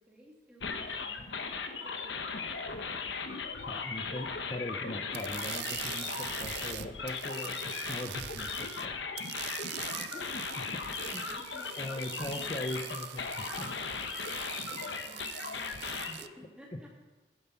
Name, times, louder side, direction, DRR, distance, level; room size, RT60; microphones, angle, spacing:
voice 1, 0.0-3.0 4.2-4.4 11.1-12.6 14.7-17.0, equal, 5° right, -3 dB, 2.3 m, -56 dB
sound 1, 0.6-16.1, left 5 dB, 85° left, 1.0 m, -38 dB
voice 2, 3.7-9.2 10.1-10.8 11.1-11.2 11.8-13.7 14.7-14.8 16.1-16.2, left 1 dB, 30° left, 3 dB, 0.7 m, -41 dB
sound 2, 5.1-8.9 9.2-16.3, right 13 dB, 70° right, 0.5 m, -43 dB
11.0 x 10.5 x 5.8 m, 1.3 s
head